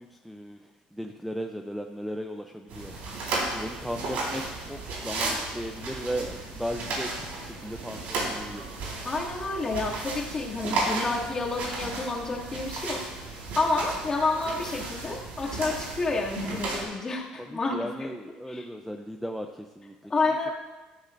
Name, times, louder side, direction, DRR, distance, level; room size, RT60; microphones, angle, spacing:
voice 1, 0.0-2.9 3.3-8.7 11.6-11.7 17.4-20.5, equal, ahead, 4 dB, 0.6 m, -37 dB
sound 1, 2.7-16.8, right 2 dB, 70° right, 4.6 m, -34 dB
voice 2, 9.0-18.1 18.5-18.6 20.1-20.5, left 3 dB, 25° left, -4 dB, 2.5 m, -29 dB
14.0 x 13.0 x 2.7 m, 1.2 s
cardioid pair, 120°, 3 cm